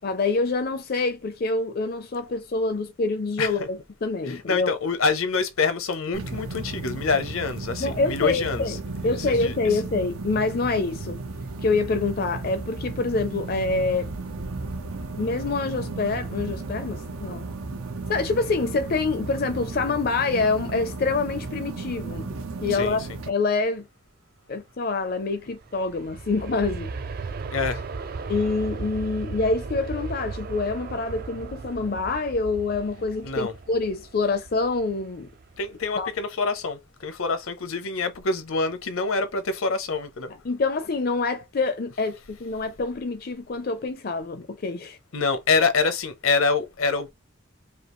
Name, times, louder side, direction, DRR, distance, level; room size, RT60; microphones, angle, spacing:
voice 1, 0.0-4.7 7.8-11.2 11.6-14.1 15.2-17.4 18.1-22.3 22.6-23.9 24.5-26.9 28.3-35.3 36.0-36.1 40.4-45.0, left 3 dB, 45° left, 0.5 m, -26 dB
voice 2, 3.4-3.7 4.3-8.8 9.1-9.8 22.7-23.0 27.5-27.8 33.2-33.5 35.6-40.3 45.1-47.1, left 4 dB, 80° left, 0.8 m, -26 dB
sound 1, 6.1-23.3, right 3 dB, 90° right, 0.8 m, -34 dB
Aircraft, 25.3-36.2 36.6-36.7, right 4 dB, 45° right, 0.3 m, -36 dB
5.0 x 2.4 x 3.0 m
head